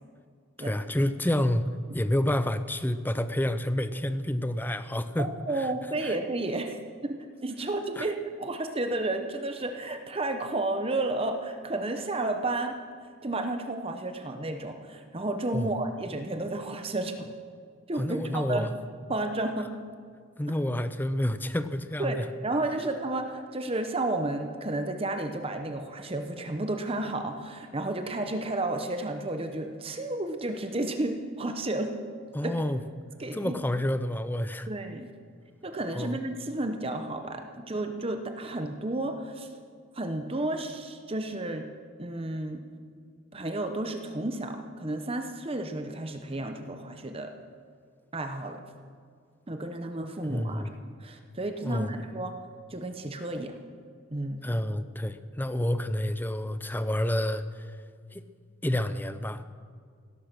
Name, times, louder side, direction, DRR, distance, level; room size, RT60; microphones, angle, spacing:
voice 1, 0.6-5.3 5.6-5.7 6.0-6.2 8.0-8.1 15.5-15.7 17.9-18.7 20.4-22.2 32.3-32.8 33.3-34.7 36.0-36.2 50.3-50.7 51.6-51.9 54.4-57.8 58.1-58.2 58.6-59.4, left 1 dB, 10° left, 12 dB, 0.5 m, -29 dB
voice 2, 5.2-6.8 7.0-12.8 13.2-17.3 17.9-18.7 19.1-19.8 22.0-31.9 32.4-32.6 33.2-33.6 34.7-35.1 35.6-39.5 39.9-41.7 42.0-42.6 43.3-47.3 48.1-48.6 49.5-50.6 51.0-52.3 52.7-53.6 54.1-54.4, right 2 dB, 25° right, 6 dB, 0.8 m, -32 dB
17.0 x 12.5 x 6.0 m, 2.1 s
head